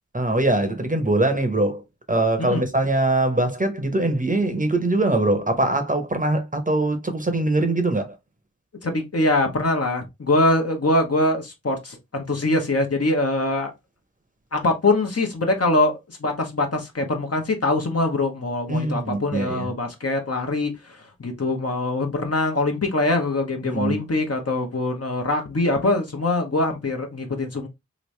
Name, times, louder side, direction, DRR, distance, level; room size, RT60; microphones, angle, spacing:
voice 1, 0.1-1.8 2.1-8.2 18.7-19.7 23.6-24.0, right 2 dB, 25° right, 0.8 m, -22 dB
voice 2, 8.8-13.7 14.5-27.7, left 2 dB, 55° left, 0.9 m, -23 dB
3.1 x 2.6 x 3.1 m
wide cardioid pair, 50°, 30 cm